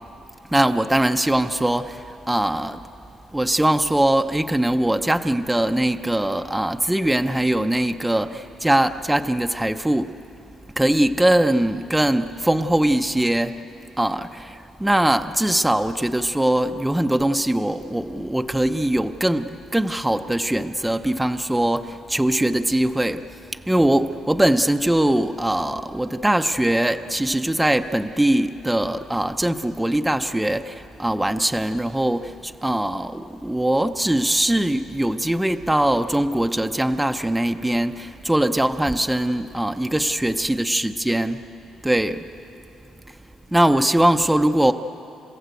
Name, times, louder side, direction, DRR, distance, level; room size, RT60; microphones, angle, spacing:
voice 1, 0.5-2.8 3.3-10.2 10.8-13.6 14.0-23.2 23.7-41.4 41.8-42.2 43.5-44.7, right 1 dB, 5° right, 7 dB, 0.7 m, -21 dB
30.0 x 16.0 x 8.0 m, 3.0 s
cardioid pair, 90°, 0 cm